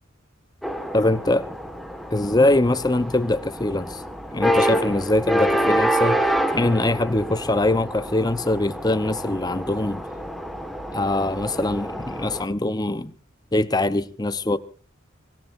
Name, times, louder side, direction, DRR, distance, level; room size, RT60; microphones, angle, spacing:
sound 1, 0.6-12.4, equal, ahead, 1.6 m, -27 dB
voice 1, 0.9-1.5 2.1-4.0 4.3-6.2 6.5-10.0 10.9-13.1 13.5-14.6, left 2 dB, 20° left, 0.8 m, -22 dB
26.5 x 18.0 x 2.6 m
head